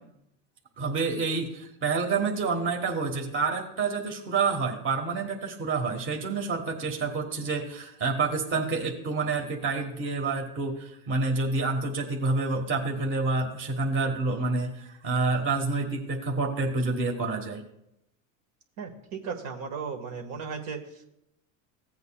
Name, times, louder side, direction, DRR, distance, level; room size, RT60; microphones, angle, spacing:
voice 1, 0.8-17.6, right 4 dB, 30° right, 2 dB, 1.5 m, -28 dB
voice 2, 18.8-21.0, right 5 dB, 55° right, 2 dB, 1.7 m, -36 dB
16.0 x 8.1 x 2.4 m, 0.81 s
supercardioid pair, 110°, 42 cm